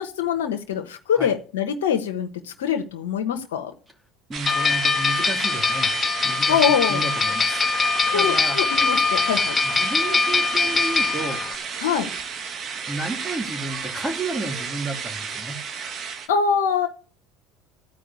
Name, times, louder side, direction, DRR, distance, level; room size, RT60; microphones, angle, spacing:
voice 1, 0.0-3.7 6.5-7.0 8.1-9.6 11.8-12.1 16.3-16.9, left 7 dB, 90° left, 4 dB, 1.0 m, -24 dB
voice 2, 4.3-5.9 6.2-7.7 8.1-8.6 9.6-11.4 12.9-15.6, right 2 dB, 15° right, 3 dB, 2.6 m, -32 dB
sound 1, 4.3-16.3, right 6 dB, 45° right, 1.5 m, -32 dB
sound 2, 4.4-11.5, left 4 dB, 20° left, 1.2 m, -22 dB
13.0 x 4.8 x 8.4 m, 0.40 s
supercardioid pair, 90°, 0 cm